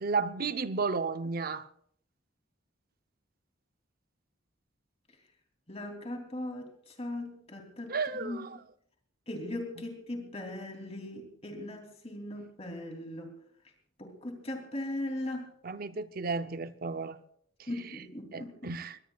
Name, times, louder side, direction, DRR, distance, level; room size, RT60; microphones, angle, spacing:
voice 1, 0.0-1.7 7.9-8.6 15.6-17.2 18.3-19.0, right 4 dB, 45° right, 0.6 m, -33 dB
voice 2, 5.7-8.4 9.3-13.3 14.0-15.5 17.7-18.8, left 1 dB, 30° left, 3.0 m, -39 dB
23.0 x 19.0 x 2.4 m
head